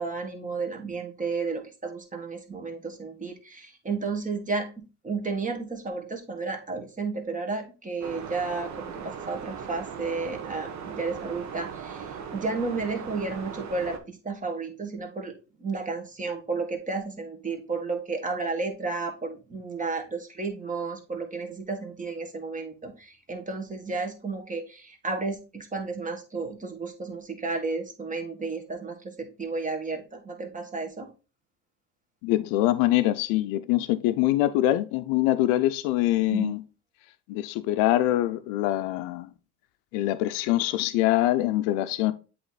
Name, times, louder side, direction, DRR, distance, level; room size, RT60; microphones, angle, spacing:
voice 1, 0.0-15.3 15.6-31.1 36.3-36.6, right 4 dB, 25° right, 1.7 m, -32 dB
sound 1, 8.0-14.0, right 7 dB, 60° right, 1.1 m, -38 dB
voice 2, 32.2-36.6 37.3-39.3 39.9-42.1, left 15 dB, 85° left, 0.5 m, -24 dB
8.0 x 3.1 x 3.9 m
supercardioid pair, 75°, 32 cm